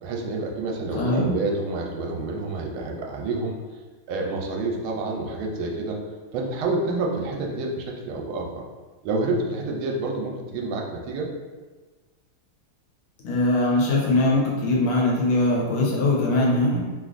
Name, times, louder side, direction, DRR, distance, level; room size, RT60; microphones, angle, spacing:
voice 1, 0.0-3.5 4.1-6.0 6.3-8.6 9.0-11.3, right 2 dB, 85° right, 0 dB, 1.4 m, -28 dB
voice 2, 0.9-1.3 13.2-16.8, left 2 dB, 85° left, -3 dB, 1.6 m, -21 dB
3.5 x 2.5 x 2.4 m, 1.3 s
omnidirectional pair, 2.3 m